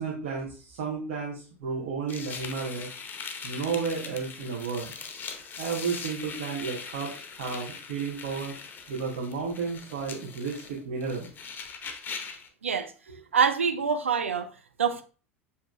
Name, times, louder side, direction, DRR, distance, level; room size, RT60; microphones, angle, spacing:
voice 1, 0.0-2.9 3.4-4.9 5.6-8.5 8.9-11.3, right 5 dB, 60° right, 1.1 m, -32 dB
sound 1, 2.1-12.5, left 5 dB, 30° left, 0.8 m, -41 dB
voice 2, 12.6-12.9 13.3-14.5 14.8-15.0, right 6 dB, 80° right, 0.4 m, -25 dB
7.1 x 2.9 x 2.4 m
figure-of-eight pair, 75°, 7 cm